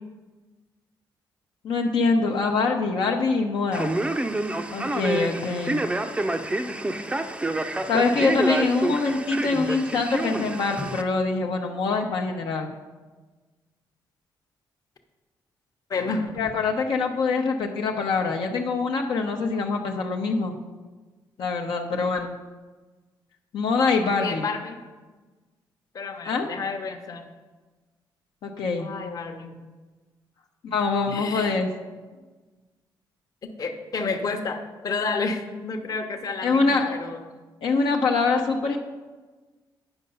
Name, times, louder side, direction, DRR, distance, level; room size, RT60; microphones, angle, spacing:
voice 1, 1.6-3.9 4.7-5.8 7.9-12.7 16.4-20.6 21.4-22.3 23.5-24.4 26.2-26.5 28.4-28.9 30.6-31.7 36.4-37.0 37.6-38.8, left 4 dB, 70° left, 1 dB, 0.8 m, -24 dB
Male speech man speaking, 3.7-11.0, right 2 dB, 15° right, 0.5 m, -28 dB
voice 2, 15.9-16.3 24.2-24.8 25.9-27.2 28.7-29.6 31.1-31.6 33.6-37.2, left 4 dB, 45° left, 5 dB, 1.0 m, -30 dB
9.0 x 5.7 x 5.4 m, 1.3 s
cardioid pair, 110°, 8 cm